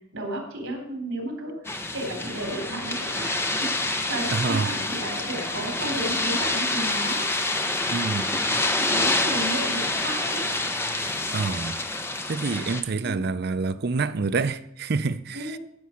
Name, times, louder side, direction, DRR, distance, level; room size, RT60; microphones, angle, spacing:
voice 1, 0.1-1.5 1.9-7.3 8.1-10.5 13.0-13.3 15.3-15.6, right 1 dB, 80° right, 3.6 m, -33 dB
sound 1, 1.6-12.8, left 2 dB, 10° left, 0.8 m, -27 dB
voice 2, 4.3-4.7 7.9-8.3 11.3-11.8 12.3-15.6, right 4 dB, 50° right, 0.5 m, -27 dB
14.0 x 6.2 x 5.8 m
head